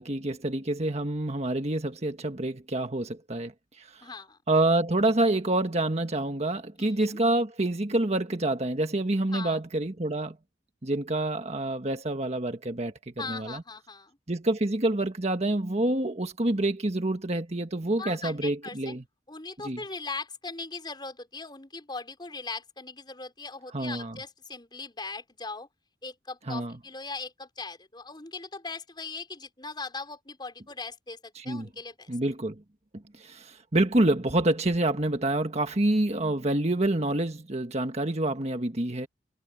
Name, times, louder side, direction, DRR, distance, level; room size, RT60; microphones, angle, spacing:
voice 1, 0.0-4.1 4.5-10.4 10.8-13.6 14.3-19.0 19.6-19.8 23.7-24.1 26.5-26.8 31.3-31.7 32.1-32.6 33.2-39.1, right 1 dB, 35° right, 1.5 m, -27 dB
voice 2, 4.0-4.4 6.8-7.2 9.3-9.6 13.2-14.2 18.0-19.0 19.3-25.7 26.0-32.1, left 4 dB, 25° left, 4.9 m, -39 dB
head